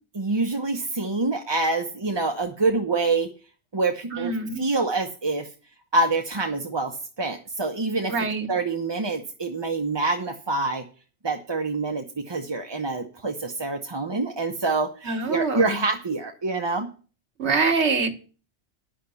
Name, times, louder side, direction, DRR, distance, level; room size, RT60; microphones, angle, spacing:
voice 1, 0.1-3.3 3.7-5.5 5.9-8.1 8.5-10.8 11.2-16.9, right 3 dB, 25° right, 4 dB, 0.7 m, -26 dB
voice 2, 4.1-4.6 8.1-8.5 15.0-15.8 17.4-18.1, right 4 dB, 75° right, 7 dB, 1.6 m, -24 dB
10.0 x 6.4 x 6.9 m, 0.37 s
omnidirectional pair, 1.2 m